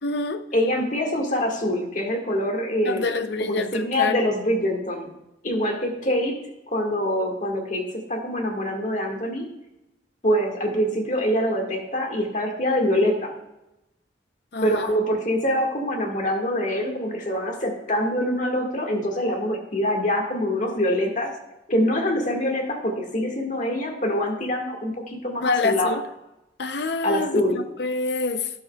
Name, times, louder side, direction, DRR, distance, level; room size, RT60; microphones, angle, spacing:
voice 1, 0.0-0.4 2.8-4.2 14.5-14.9 25.4-26.0 26.6-28.5, left 3 dB, 60° left, 0.7 m, -27 dB
voice 2, 0.5-3.1 3.4-5.1 5.4-6.4 6.7-9.5 10.2-13.3 14.6-21.3 21.7-26.0 27.0-27.6, equal, 40° left, 1.8 m, -24 dB
12.5 x 10.5 x 2.4 m
head